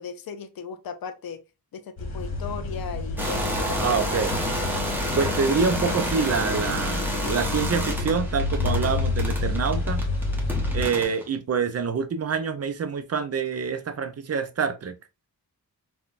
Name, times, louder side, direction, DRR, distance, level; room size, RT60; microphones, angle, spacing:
voice 1, 0.0-1.4 1.7-4.1, left 6 dB, 70° left, 0.5 m, -37 dB
sound 1, 2.0-10.9, left 3 dB, 45° left, 1.5 m, -29 dB
sound 2, 3.2-11.2, left 1 dB, 5° right, 0.9 m, -29 dB
voice 2, 3.8-4.4 5.1-10.1 10.7-14.9, right 5 dB, 45° right, 0.5 m, -26 dB
3.8 x 2.3 x 2.4 m
wide cardioid pair, 100°, 36 cm